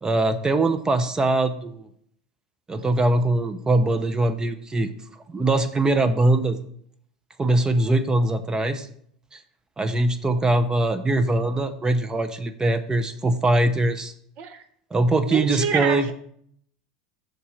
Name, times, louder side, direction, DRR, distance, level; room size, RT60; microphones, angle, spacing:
voice 1, 0.0-1.9 2.7-4.9 5.3-6.6 7.4-8.9 9.3-9.4 9.8-14.1 14.9-16.1, right 2 dB, 15° right, 9 dB, 0.7 m, -22 dB
voice 2, 15.3-16.1, right 6 dB, 50° right, 9 dB, 0.8 m, -27 dB
6.6 x 4.2 x 6.2 m, 0.65 s
hypercardioid pair, 95°, 4 cm